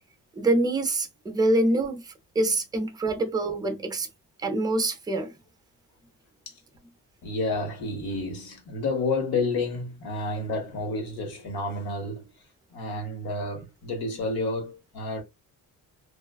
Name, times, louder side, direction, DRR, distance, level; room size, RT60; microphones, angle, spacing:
voice 1, 0.3-4.1 4.4-5.3, right 2 dB, 10° right, 0.5 m, -25 dB
voice 2, 7.2-12.3 12.7-15.2, left 2 dB, 85° left, 1.2 m, -30 dB
2.4 x 2.2 x 2.3 m
cardioid pair, 110°, 35 cm